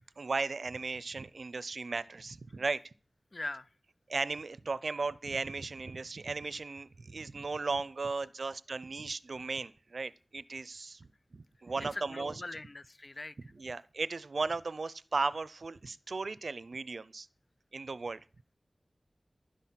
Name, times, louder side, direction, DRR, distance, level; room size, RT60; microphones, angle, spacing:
voice 1, 0.2-2.9 4.1-12.3 13.6-17.3 17.7-18.2, right 3 dB, 80° right, 0.5 m, -36 dB
voice 2, 3.3-3.7 11.9-13.4, left 2 dB, 45° left, 0.7 m, -41 dB
11.5 x 10.0 x 7.5 m
wide cardioid pair, 70°, 0 cm